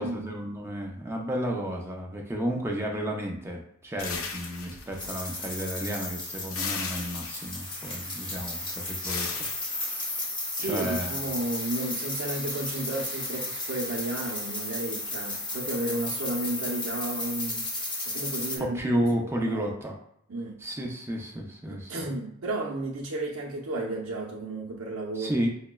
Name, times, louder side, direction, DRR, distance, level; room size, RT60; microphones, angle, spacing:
voice 1, 0.0-10.2 10.6-11.1 18.7-19.9 20.6-22.1 25.2-25.5, equal, 10° right, 0 dB, 0.4 m, -32 dB
sound 1, 4.0-5.4 6.5-7.7 9.0-9.5, left 5 dB, 70° left, 0.6 m, -35 dB
sound 2, 5.0-18.6, left 2 dB, 25° left, 0.9 m, -34 dB
voice 2, 10.5-17.7 18.1-19.0 19.4-19.7 20.3-20.6 21.7-25.3, right 2 dB, 75° right, -2 dB, 0.6 m, -33 dB
5.6 x 2.0 x 2.2 m, 0.73 s
head